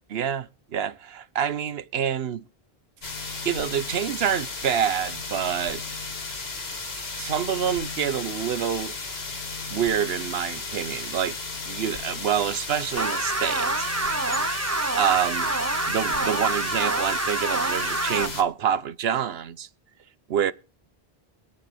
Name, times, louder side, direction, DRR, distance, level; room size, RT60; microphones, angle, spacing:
voice 1, 0.1-2.4 3.4-5.8 7.2-9.0 9.7-11.4 11.6-13.9 15.0-15.5 15.9-19.7 20.3-20.5, right 8 dB, 75° right, 1.0 m, -27 dB
sound 1, 3.0-18.4, left 3 dB, 75° left, 2.2 m, -34 dB
sound 2, 13.0-18.3, right 2 dB, 15° right, 0.8 m, -27 dB
24.0 x 8.5 x 3.3 m
omnidirectional pair, 1.0 m